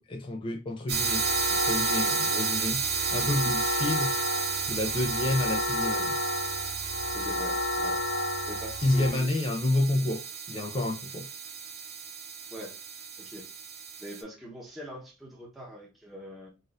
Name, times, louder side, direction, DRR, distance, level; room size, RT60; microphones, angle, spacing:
voice 1, 0.0-2.8 3.1-4.1 4.7-6.1 8.8-11.3, left 1 dB, 25° left, 0.4 m, -29 dB
sound 1, 0.9-9.1, left 2 dB, 80° left, 0.6 m, -32 dB
sound 2, 0.9-14.2, right 6 dB, 55° right, 0.7 m, -33 dB
voice 2, 7.1-8.0 8.5-9.3 12.5-12.8 13.2-13.5 14.0-16.5, equal, ahead, 0.8 m, -42 dB
4.0 x 2.5 x 2.4 m
head